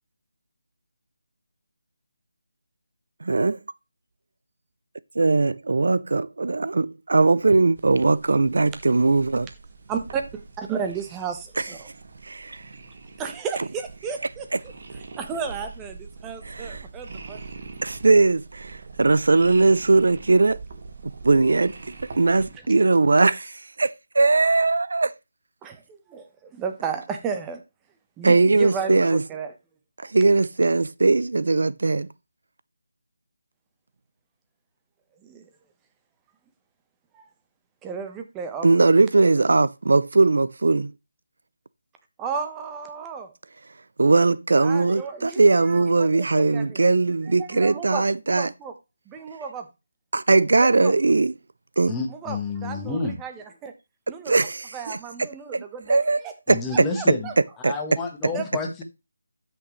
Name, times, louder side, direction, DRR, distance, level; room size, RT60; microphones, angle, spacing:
voice 1, 3.2-3.6 5.2-9.5 11.6-11.7 12.2-12.6 16.4-16.8 17.8-20.6 21.2-21.8 22.1-25.1 28.2-29.2 30.0-32.1 38.6-40.9 44.0-48.5 50.1-51.3 51.8-51.9 54.3-55.0 55.5-55.6 55.9-56.2 56.5-56.9 57.6-57.7, right 3 dB, 70° right, 0.5 m, -20 dB
sound 1, 7.8-22.6, right 4 dB, 45° right, 1.9 m, -43 dB
voice 2, 9.9-10.2 10.6-11.9 13.2-14.5 15.2-17.4 25.6-26.2 26.5-27.6 28.2-29.5 35.2-35.4 37.1-37.2 37.8-38.7 42.2-43.3 44.6-46.8 47.4-48.7 49.1-49.7 50.6-50.9 52.1-53.7 54.1-54.3 54.7-56.0 56.2-56.3 56.7-57.3 58.3-58.4, right 6 dB, 10° right, 1.0 m, -33 dB
voice 3, 51.9-53.2 56.5-57.3 57.6-58.8, left 3 dB, 10° left, 1.4 m, -29 dB
12.5 x 6.3 x 3.1 m
figure-of-eight pair, 165°, 0 cm